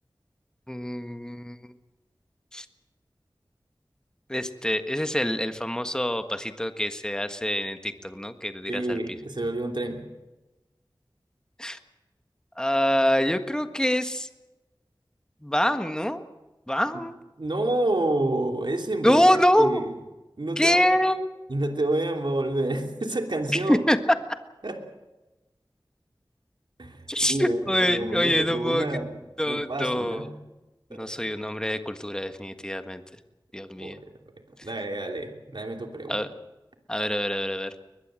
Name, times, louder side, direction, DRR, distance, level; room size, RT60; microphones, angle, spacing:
voice 1, 0.7-1.7 2.5-2.6 4.3-9.0 11.6-11.8 12.6-14.3 15.4-16.2 16.7-17.1 19.0-19.8 20.6-21.2 23.5-24.0 24.3-24.4 27.1-28.9 29.4-30.3 30.9-33.0 33.5-34.0 36.1-36.3 36.9-37.7, equal, 10° left, 8 dB, 1.6 m, -25 dB
voice 2, 8.7-10.0 17.4-19.9 20.4-20.9 21.5-23.8 24.6-24.8 26.8-29.1 29.4-30.3 30.9-31.2 33.8-34.1 34.6-36.2, right 2 dB, 65° right, 4 dB, 3.1 m, -29 dB
22.0 x 21.0 x 7.7 m, 1.1 s
wide cardioid pair, 45°, 8 cm